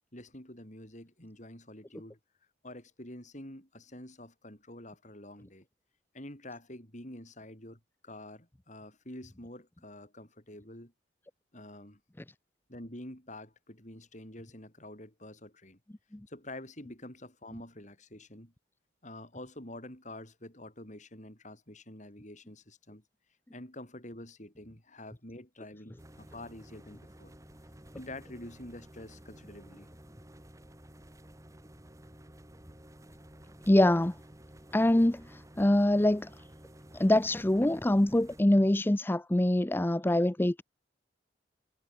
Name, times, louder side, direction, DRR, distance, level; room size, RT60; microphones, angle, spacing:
voice 1, 0.1-2.2 2.6-5.7 6.1-10.9 11.5-12.0 12.7-15.8 16.3-18.5 19.0-23.0 23.5-27.3 27.9-29.9, left 1 dB, 40° left, 7.3 m, -47 dB
sound 1, 26.0-38.4, right 1 dB, 15° right, 1.6 m, -53 dB
voice 2, 33.7-34.1 34.7-36.3 36.9-40.6, left 1 dB, 10° left, 0.5 m, -24 dB
head